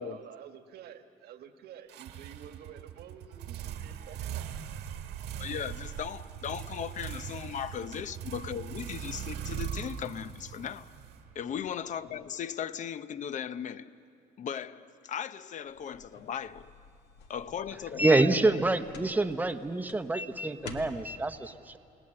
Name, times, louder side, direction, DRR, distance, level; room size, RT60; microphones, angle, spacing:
voice 1, 0.0-4.5, right 9 dB, 70° right, 1.5 m, -49 dB
sound 1, 1.9-11.7, right 9 dB, 85° right, 1.7 m, -40 dB
voice 2, 5.4-10.9 11.3-13.9 14.4-16.7 17.3-18.5, left 8 dB, 45° left, 0.7 m, -37 dB
sound 2, 15.7-21.2, left 5 dB, 85° left, 1.9 m, -49 dB
voice 3, 18.0-21.8, right 2 dB, 10° right, 0.9 m, -27 dB
28.5 x 19.0 x 7.7 m
cardioid pair, 110°, 17 cm